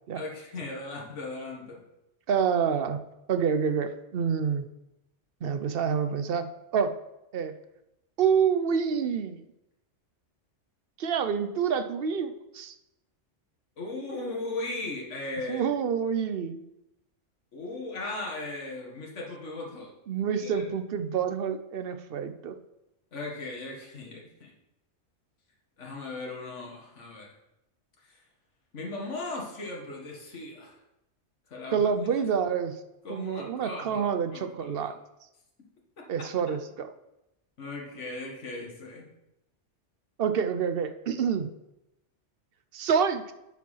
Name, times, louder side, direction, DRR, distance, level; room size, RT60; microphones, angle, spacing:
voice 1, 0.1-1.8 13.8-15.7 17.5-19.9 20.4-20.6 23.1-24.5 25.8-27.3 28.7-30.8 31.5-31.9 33.0-34.9 36.0-36.1 37.6-39.1, left 2 dB, 75° left, -2 dB, 1.9 m, -37 dB
voice 2, 2.3-3.0 3.3-4.7 5.4-6.9 7.3-7.5 8.2-9.4 11.0-12.7 15.5-16.6 20.1-22.6 31.7-32.8 33.1-35.0 36.1-36.9 40.2-41.5 42.7-43.3, right 7 dB, 55° right, 9 dB, 0.8 m, -27 dB
9.0 x 5.1 x 5.6 m, 0.90 s
omnidirectional pair, 1.3 m